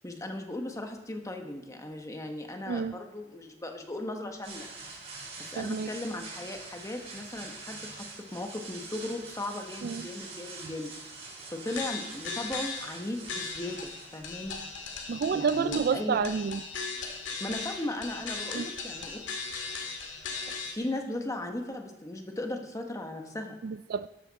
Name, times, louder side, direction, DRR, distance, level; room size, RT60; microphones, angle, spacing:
voice 1, 0.0-4.7 5.4-10.9 11.5-14.6 15.3-16.2 17.4-19.2 20.5-23.6, left 1 dB, 15° left, 4 dB, 1.3 m, -37 dB
voice 2, 2.7-3.0 5.6-5.9 9.8-10.1 10.6-10.7 15.1-16.6 18.5-18.7 23.6-24.1, right 6 dB, 55° right, 15 dB, 0.3 m, -29 dB
sound 1, 4.4-15.1, right 3 dB, 35° right, 4.4 m, -45 dB
sound 2, 11.7-13.0 13.3-20.7, left 4 dB, 75° left, 2.1 m, -38 dB
12.5 x 12.0 x 4.1 m, 0.99 s
head